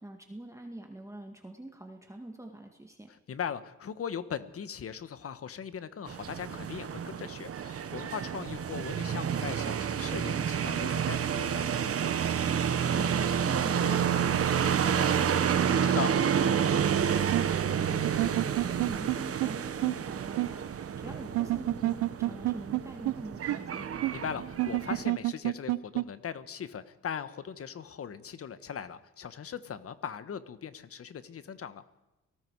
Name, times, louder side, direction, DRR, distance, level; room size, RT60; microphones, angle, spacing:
voice 1, 0.0-3.1 12.4-24.0, right 1 dB, 10° right, 3 dB, 2.0 m, -44 dB
voice 2, 3.3-11.7 15.8-16.1 24.1-31.8, left 7 dB, 50° left, 12 dB, 1.4 m, -39 dB
sound 1, 6.1-25.0, right 8 dB, 50° right, 1.3 m, -29 dB
sound 2, 17.3-17.4 18.0-19.2 19.4-19.5 19.8-19.9 20.4-20.5 21.4-22.8 23.1-23.2 23.5-23.6 24.0-24.1 24.6-26.0, right 18 dB, 85° right, 0.6 m, -27 dB
29.5 x 18.5 x 4.8 m, 1.0 s
cardioid pair, 90°, 30 cm